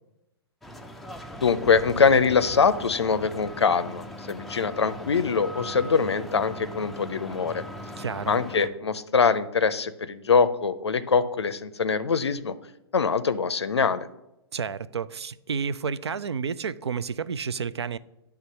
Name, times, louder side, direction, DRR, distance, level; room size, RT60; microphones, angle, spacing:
sound 1, 0.6-8.7, left 1 dB, ahead, 0.4 m, -39 dB
voice 1, 1.4-7.6 8.3-12.5 12.9-14.1, left 5 dB, 80° left, 0.5 m, -23 dB
voice 2, 8.0-8.4 14.5-18.0, right 6 dB, 75° right, 0.4 m, -30 dB
9.5 x 3.5 x 5.4 m
figure-of-eight pair, 115°, 14 cm